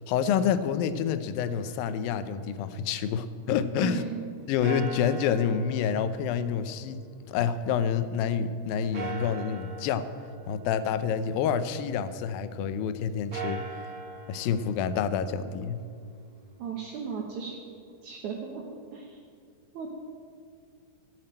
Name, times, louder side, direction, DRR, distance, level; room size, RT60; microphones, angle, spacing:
voice 1, 0.1-4.0 4.5-10.1 10.5-13.7 14.3-15.8, left 7 dB, 85° left, 12 dB, 2.5 m, -28 dB
sound 1, 1.4-3.5 4.6-8.0 8.9-11.9 13.2-17.2, right 5 dB, 50° right, 1.7 m, -43 dB
voice 2, 3.8-4.2 16.6-17.6 18.0-18.6 18.9-19.2 19.7-19.9, right 6 dB, 65° right, 0 dB, 2.4 m, -35 dB
14.0 x 7.9 x 8.8 m, 2.2 s
omnidirectional pair, 4.0 m